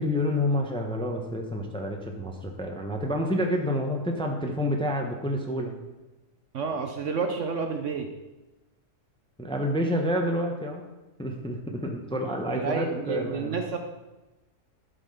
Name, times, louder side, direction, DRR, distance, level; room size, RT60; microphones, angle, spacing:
voice 1, 0.0-5.7 9.4-10.8 11.2-13.6, left 1 dB, 5° left, 2 dB, 0.8 m, -28 dB
voice 2, 6.5-8.1 12.5-13.8, right 5 dB, 60° right, 5 dB, 1.0 m, -30 dB
11.0 x 5.8 x 5.7 m, 1.1 s
omnidirectional pair, 1.7 m